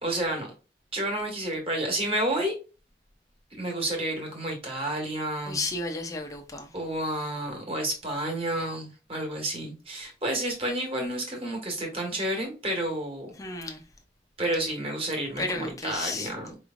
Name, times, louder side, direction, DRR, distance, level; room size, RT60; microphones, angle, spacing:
voice 1, 0.0-0.5 0.9-2.5 3.5-5.6 6.7-13.3 14.4-16.6, right 1 dB, 35° right, 1.5 m, -30 dB
voice 2, 5.5-6.8 13.4-13.8 15.4-16.3, left 2 dB, 20° left, 0.6 m, -33 dB
4.6 x 3.1 x 2.5 m
head